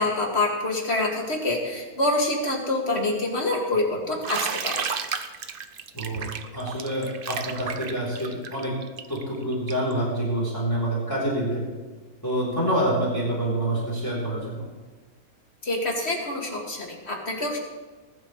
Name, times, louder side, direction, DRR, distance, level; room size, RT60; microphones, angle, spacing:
voice 1, 0.0-4.8 15.6-17.6, left 2 dB, 40° left, -1 dB, 2.7 m, -26 dB
Bathtub (filling or washing), 4.2-9.9, right 6 dB, 45° right, 0.8 m, -32 dB
voice 2, 5.9-6.3 6.5-8.7 9.1-11.6 12.2-14.6, right 1 dB, 15° left, -4 dB, 3.8 m, -27 dB
20.0 x 12.0 x 3.3 m, 1.3 s
omnidirectional pair, 1.6 m